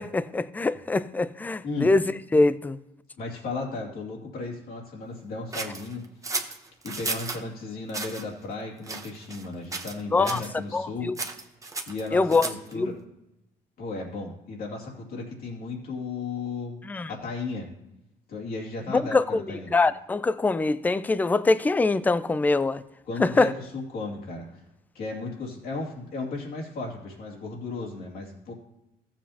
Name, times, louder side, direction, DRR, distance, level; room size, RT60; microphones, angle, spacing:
voice 1, 0.0-2.0 2.3-2.8 10.1-10.4 10.7-11.2 12.1-12.5 12.7-12.9 16.9-17.1 18.9-19.4 19.7-22.8 23.2-23.5, left 3 dB, 10° left, 0.3 m, -23 dB
voice 2, 3.2-6.0 6.8-11.1 11.9-12.9 13.8-16.8 17.1-17.7 18.3-19.7 23.0-24.6 24.9-28.5, left 3 dB, 60° left, 2.5 m, -35 dB
sound 1, 5.5-7.4 7.9-8.2 8.8-9.5 9.7-10.0 10.2-10.5 11.1-12.7, right 3 dB, 20° right, 0.9 m, -33 dB
15.0 x 7.3 x 2.8 m
cardioid pair, 110°, 17 cm